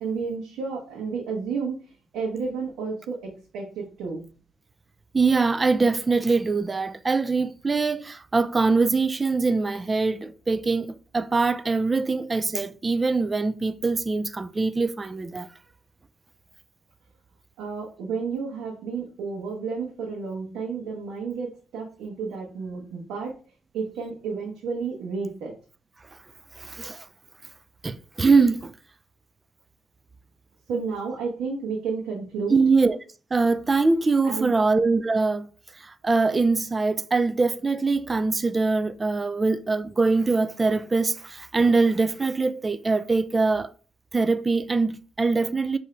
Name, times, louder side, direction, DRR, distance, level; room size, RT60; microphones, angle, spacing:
voice 1, 0.0-1.8 2.1-4.2 17.6-23.3 23.7-25.6 30.7-32.6 34.2-34.5, right 5 dB, 85° right, 0.9 m, -31 dB
voice 2, 5.1-15.5 26.6-27.1 27.8-28.7 32.5-33.0 33.3-35.5 35.8-43.7 44.1-45.8, right 3 dB, 25° right, 0.3 m, -23 dB
4.9 x 2.7 x 3.2 m
cardioid pair, 90°, 0 cm